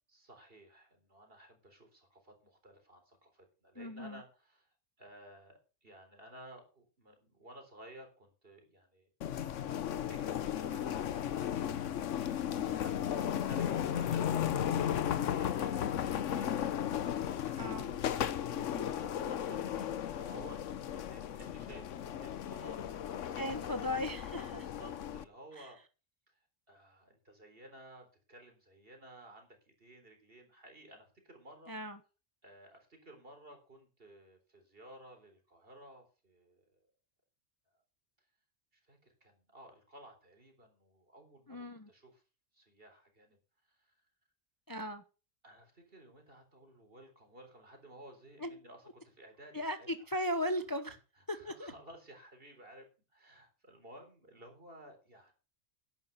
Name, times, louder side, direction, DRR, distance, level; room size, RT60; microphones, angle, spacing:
voice 1, 0.1-4.7 5.0-9.1 10.0-17.8 19.0-21.9 22.2-23.8 24.6-25.8 26.3-26.4 26.7-31.7 32.4-36.7 38.9-42.2 42.5-43.4 43.8-43.9 45.4-49.9 50.8-50.9 51.3-52.9 53.1-55.3, right 1 dB, 50° right, 4 dB, 4.1 m, -55 dB
voice 2, 3.7-4.2 17.6-17.9 18.5-18.9 23.4-24.7 25.5-25.7 31.7-32.0 41.5-41.9 44.7-45.0 48.4-48.6 49.5-51.0 51.3-51.7, left 1 dB, 20° left, 9 dB, 0.9 m, -37 dB
sound 1, 9.2-25.2, left 10 dB, 80° left, 1.1 m, -35 dB
11.0 x 9.1 x 6.7 m, 0.35 s
omnidirectional pair, 1.3 m